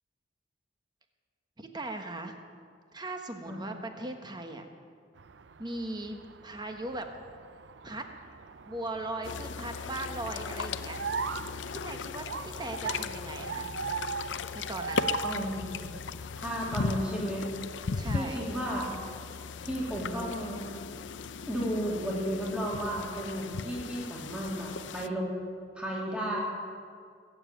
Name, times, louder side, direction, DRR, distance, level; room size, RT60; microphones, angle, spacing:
voice 1, 1.6-2.4 2.9-4.7 5.6-7.1 7.8-8.1 8.6-11.0 11.7-13.7 14.5-15.1 17.9-18.4, right 2 dB, 25° right, 5 dB, 1.3 m, -38 dB
sound 1, 5.2-16.0, right 6 dB, 70° right, 0.6 m, -40 dB
sound 2, 9.2-25.1, left 5 dB, 75° left, 0.6 m, -37 dB
voice 2, 15.2-16.0 16.4-17.5 18.1-19.0 19.6-20.7 21.5-25.3 25.7-26.4, equal, 5° right, -4 dB, 2.8 m, -33 dB
21.5 x 7.3 x 8.9 m, 2.2 s
head